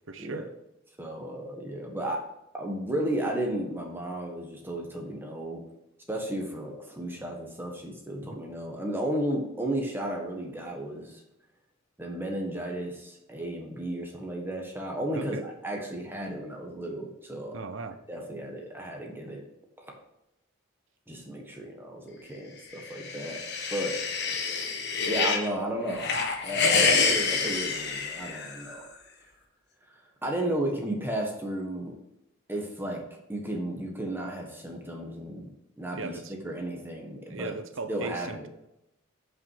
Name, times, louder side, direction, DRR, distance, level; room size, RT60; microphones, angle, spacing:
voice 1, 0.1-0.5 8.2-8.4 15.1-15.5 17.5-18.0 35.9-36.3 37.3-38.5, right 3 dB, 65° right, 9 dB, 0.8 m, -38 dB
voice 2, 1.0-2.2 2.5-5.6 6.1-11.2 12.0-17.6 18.1-19.4 19.8-19.9 21.1-23.4 23.7-24.0 25.1-26.1 26.4-28.8 29.9-30.0 30.2-31.9 32.5-33.0 33.3-35.5 35.8-36.2 36.4-37.5 37.9-38.5, right 1 dB, 10° right, 0 dB, 1.4 m, -33 dB
sound 1, 22.8-25.5 25.9-28.7, left 4 dB, 50° left, 1.3 m, -27 dB
9.2 x 5.5 x 4.8 m, 0.86 s
head